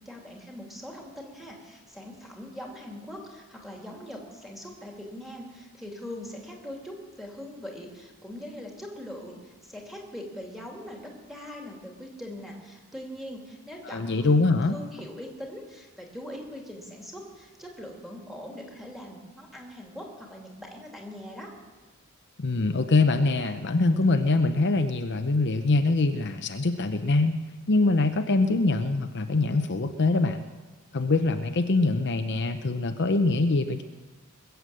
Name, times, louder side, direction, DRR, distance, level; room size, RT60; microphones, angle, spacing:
voice 1, 0.1-14.3 14.7-21.5, left 1 dB, ahead, 0 dB, 2.7 m, -41 dB
voice 2, 13.8-14.8 22.4-27.4 27.7-30.4 30.9-33.8, left 3 dB, 55° left, 7 dB, 0.7 m, -24 dB
21.0 x 8.2 x 7.6 m, 1.3 s
head